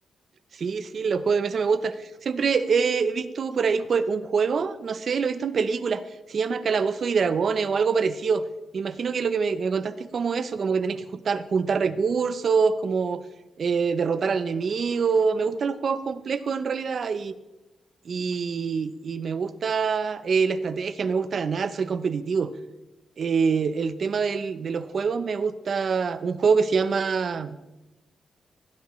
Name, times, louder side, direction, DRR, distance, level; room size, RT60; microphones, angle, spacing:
voice 1, 0.5-6.0 6.3-8.4 8.7-13.2 13.6-17.3 18.1-22.5 23.2-27.6, right 5 dB, 45° right, 12 dB, 0.6 m, -25 dB
16.5 x 10.5 x 3.1 m, 1.0 s
wide cardioid pair, 175°, 0 cm